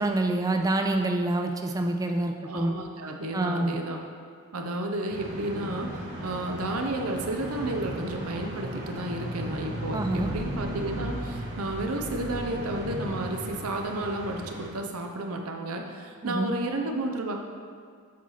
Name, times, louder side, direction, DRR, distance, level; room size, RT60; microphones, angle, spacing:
voice 1, 0.0-2.7 3.3-3.8 9.9-10.3 16.2-16.5, right 2 dB, 15° right, 4 dB, 0.3 m, -26 dB
voice 2, 2.4-4.0 4.5-17.4, right 2 dB, 85° right, 3 dB, 0.8 m, -32 dB
sound 1, 5.1-14.7, right 1 dB, 50° right, 1.5 m, -36 dB
sound 2, 10.1-13.5, left 1 dB, 75° left, 0.9 m, -41 dB
7.4 x 4.1 x 5.8 m, 2.1 s
head